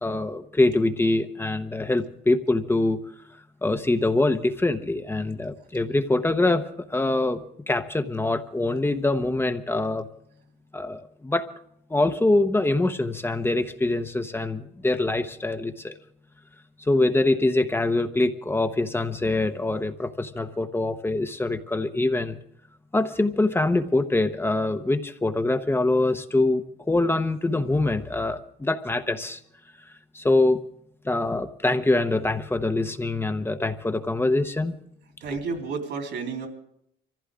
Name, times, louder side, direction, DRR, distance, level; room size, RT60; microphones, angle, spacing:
voice 1, 0.0-3.1 3.6-7.4 7.7-10.1 10.7-11.5 11.9-15.9 16.8-22.4 22.9-29.4 30.1-30.6 31.0-34.7, left 2 dB, 10° left, 8 dB, 0.9 m, -24 dB
voice 2, 35.2-36.5, right 4 dB, 70° right, 3 dB, 3.6 m, -31 dB
24.0 x 15.0 x 3.7 m, 0.72 s
cardioid pair, 105°, 19 cm